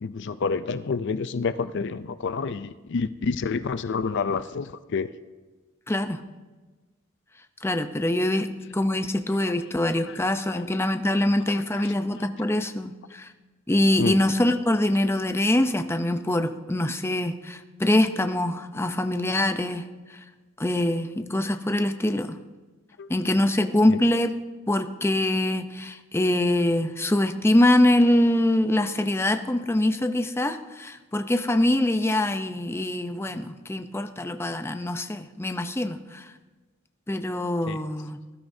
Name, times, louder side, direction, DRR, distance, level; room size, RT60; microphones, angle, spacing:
voice 1, 0.0-5.1 10.0-10.2 10.5-10.6 11.7-12.2 14.0-14.2 23.0-23.1 23.9-24.0 37.7-37.8, left 4 dB, 60° left, 13 dB, 0.5 m, -29 dB
voice 2, 5.9-6.2 7.6-13.3 13.7-19.8 20.6-22.4 23.1-24.3 24.7-36.3 37.1-38.2, left 1 dB, 10° left, 7 dB, 0.6 m, -24 dB
20.0 x 12.5 x 2.7 m, 1.3 s
head